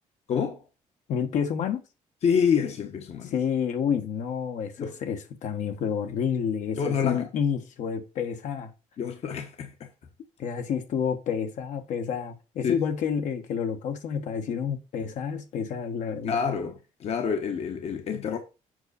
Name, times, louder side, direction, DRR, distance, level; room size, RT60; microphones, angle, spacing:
voice 1, 0.3-0.6 2.2-3.3 4.8-5.0 6.8-7.2 9.0-9.9 12.6-12.7 16.2-18.4, left 7 dB, 55° left, 1.1 m, -27 dB
voice 2, 1.1-1.8 3.3-8.7 10.4-16.4, left 7 dB, 70° left, 1.4 m, -29 dB
7.9 x 5.4 x 4.2 m
cardioid pair, 115°, 13 cm